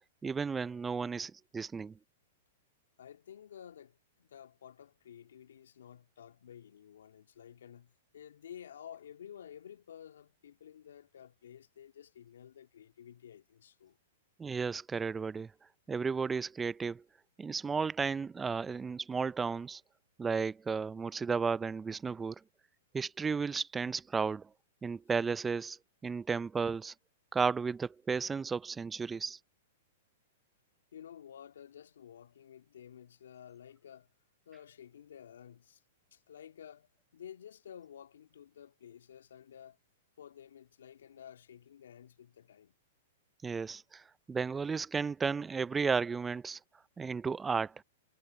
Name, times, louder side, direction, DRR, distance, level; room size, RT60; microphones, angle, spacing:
voice 1, 0.2-1.9 14.4-15.5 15.9-17.0 17.4-19.8 20.2-22.4 22.9-24.5 24.8-25.8 26.0-26.9 27.3-29.4 43.4-46.6 47.0-47.7, right 5 dB, 15° right, 0.6 m, -33 dB
voice 2, 3.0-14.0 30.9-34.1 34.5-35.8 36.1-39.8 40.2-42.7, left 9 dB, 75° left, 2.5 m, -52 dB
hypercardioid pair, 110°, 0 cm